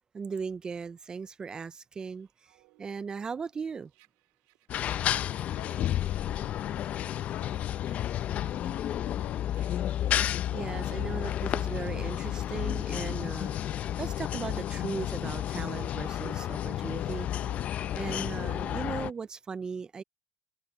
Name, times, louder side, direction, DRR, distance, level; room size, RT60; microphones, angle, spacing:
voice 1, 0.1-2.3 2.8-3.9 10.5-17.3 17.9-20.0, right 5 dB, 20° right, 0.5 m, -37 dB
sound 1, 2.2-11.0 11.5-19.3, right 25 dB, 75° right, 2.8 m, -62 dB
sound 2, 4.7-19.1, left 11 dB, 40° left, 0.6 m, -31 dB
voice 2, 5.5-9.6, left 22 dB, 75° left, 2.5 m, -50 dB
supercardioid pair, 125°, 4 cm